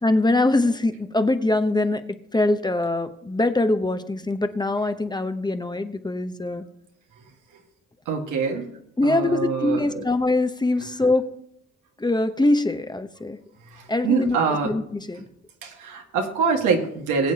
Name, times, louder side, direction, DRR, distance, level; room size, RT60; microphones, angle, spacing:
voice 1, 0.0-6.6 9.0-11.3 12.0-13.4 13.9-15.2, left 2 dB, 15° left, 9 dB, 0.8 m, -23 dB
voice 2, 8.1-8.7 9.0-10.0 13.7-14.7 15.6-17.3, right 5 dB, 85° right, 2 dB, 1.9 m, -25 dB
21.5 x 7.8 x 2.9 m, 0.73 s
cardioid pair, 90°, 30 cm